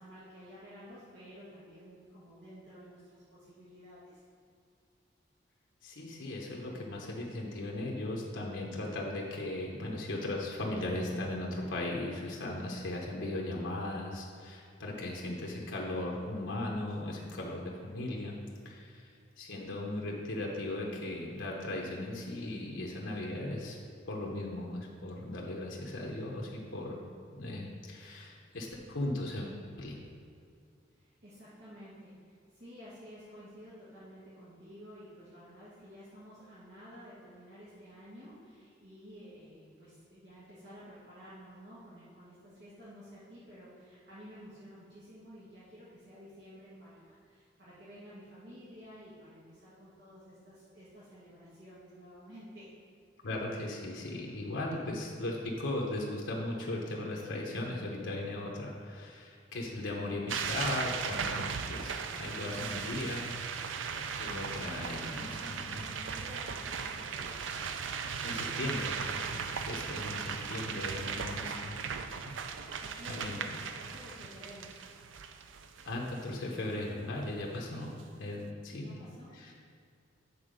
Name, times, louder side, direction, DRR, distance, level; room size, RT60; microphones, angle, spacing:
voice 1, 0.0-4.2 30.9-52.7 64.6-67.5 70.1-71.6 72.5-74.8 77.7-77.9 78.7-79.5, equal, 60° right, -11 dB, 1.7 m, -52 dB
voice 2, 5.8-18.4 18.6-19.1 19.4-23.8 24.1-27.0 27.3-30.0 53.2-63.2 64.1-65.9 68.2-71.8 73.1-73.4 75.9-77.9 78.2-78.9 79.3-79.5, left 1 dB, 85° left, -2 dB, 0.9 m, -37 dB
sound 1, 60.3-76.2, right 6 dB, 90° right, 0.4 m, -37 dB
8.5 x 4.0 x 5.1 m, 2.3 s
head